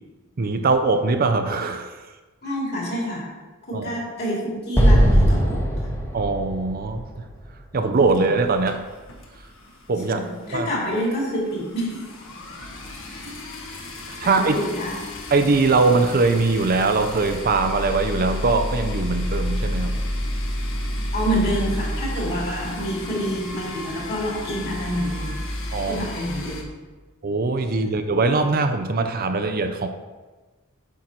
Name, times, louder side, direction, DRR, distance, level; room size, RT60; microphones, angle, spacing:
voice 1, 0.4-2.1 3.7-4.0 6.1-7.2 7.7-8.9 9.9-10.2 10.5-10.7 14.1-14.6 15.3-20.0 25.7-26.0 27.2-29.9, right 3 dB, 45° right, 7 dB, 0.5 m, -21 dB
voice 2, 2.4-3.3 3.7-5.9 10.1-12.1 13.0-13.3 14.2-14.9 21.1-25.4 25.9-26.7 27.8-27.9, equal, 50° left, -4 dB, 3.0 m, -27 dB
Explosion, 4.8-8.0, equal, 10° left, 1.0 m, -19 dB
sound 1, 8.0-9.8 10.0-10.2 10.6-10.7 10.8-26.6, left 1 dB, 65° left, 1.3 m, -31 dB
8.4 x 6.5 x 4.3 m, 1.3 s
head